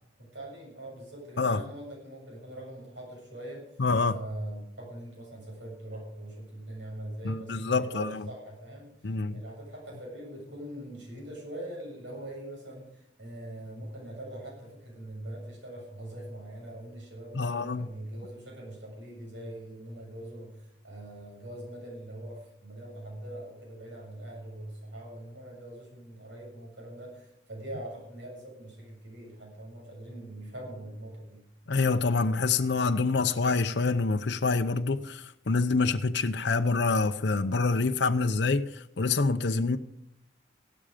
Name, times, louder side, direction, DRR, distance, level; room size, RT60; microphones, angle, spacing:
voice 1, 0.2-31.4, right 1 dB, 75° right, 7.3 m, -42 dB
voice 2, 3.8-4.2 7.2-8.1 9.0-9.4 17.3-17.9 31.7-39.8, left 3 dB, 65° left, 0.7 m, -26 dB
16.0 x 12.5 x 5.1 m
head